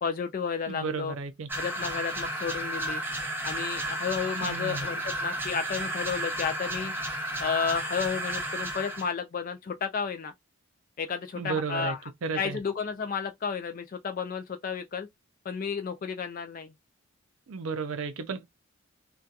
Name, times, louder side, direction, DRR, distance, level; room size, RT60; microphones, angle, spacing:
voice 1, 0.0-1.2 1.5-3.0 3.4-6.9 7.4-10.3 11.0-12.0 12.3-15.1 15.4-16.7, left 6 dB, 40° left, 0.3 m, -32 dB
voice 2, 0.7-1.5 4.4-4.9 11.4-11.9 12.2-12.6 17.5-18.5, right 5 dB, 75° right, 0.5 m, -33 dB
sound 1, 1.5-9.1, right 1 dB, 10° right, 0.6 m, -33 dB
2.7 x 2.2 x 2.3 m
head